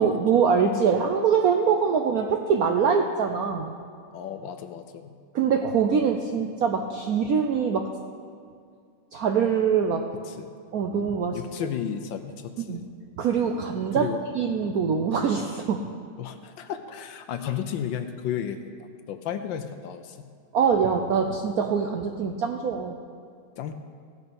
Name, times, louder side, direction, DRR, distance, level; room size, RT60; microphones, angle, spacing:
voice 1, 0.0-3.8 5.3-7.9 9.1-10.1 10.7-11.7 12.6-12.8 13.2-14.1 14.3-15.9 20.5-23.0, right 6 dB, 75° right, 4 dB, 0.8 m, -24 dB
voice 2, 4.1-5.1 10.3-10.5 11.3-12.9 13.9-14.2 16.2-18.7 19.1-20.3 23.6-23.7, left 9 dB, 75° left, 8 dB, 1.3 m, -33 dB
17.0 x 6.3 x 5.3 m, 2.2 s
omnidirectional pair, 2.3 m